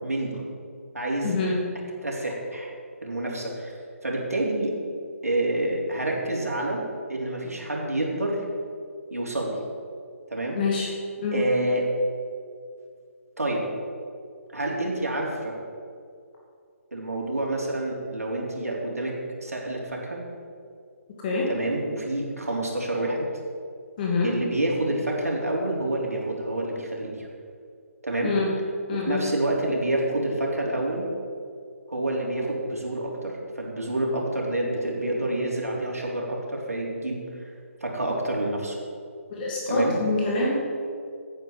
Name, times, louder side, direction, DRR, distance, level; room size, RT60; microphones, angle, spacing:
voice 1, 0.0-0.4 0.9-1.3 2.0-2.7 3.0-3.7 4.0-4.7 5.2-6.8 7.1-8.4 9.1-9.6 10.3-10.6 11.3-11.8 13.4-13.7 14.5-15.6 16.9-19.1 19.4-20.2 21.5-23.3 24.2-27.3 28.0-28.3 28.9-31.1 31.9-37.4 37.8-38.8 39.7-40.0, right 1 dB, 90° right, -2 dB, 3.6 m, -28 dB
voice 2, 1.2-1.6 10.6-10.9 11.2-11.4 21.2-21.5 24.0-24.3 28.2-28.5 28.9-29.2 39.3-40.5, left 3 dB, 35° left, -3 dB, 2.5 m, -25 dB
9.8 x 9.6 x 7.4 m, 2.2 s
figure-of-eight pair, 145°, 8 cm